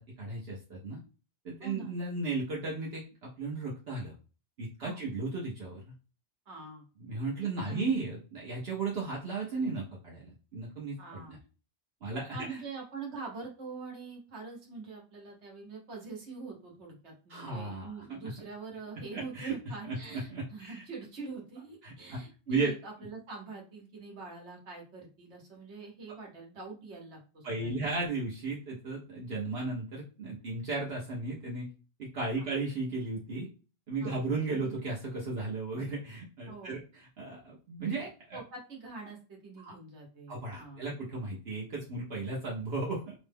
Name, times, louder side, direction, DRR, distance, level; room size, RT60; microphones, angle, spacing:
voice 1, 0.2-1.0 1.4-4.1 4.6-5.9 7.0-11.4 12.0-12.6 17.3-18.3 19.1-19.6 19.9-20.8 21.8-22.7 27.4-31.7 32.0-33.5 33.9-38.4 39.6-39.7 40.3-43.1, right 3 dB, 65° right, -4 dB, 1.1 m, -35 dB
voice 2, 1.6-1.9 4.8-5.0 6.5-6.8 7.4-7.9 11.0-11.4 12.3-27.8 32.4-32.5 34.0-34.2 36.5-36.8 38.3-40.8, right 4 dB, 80° right, -1 dB, 1.4 m, -44 dB
3.0 x 2.2 x 3.3 m, 0.35 s
omnidirectional pair, 1.1 m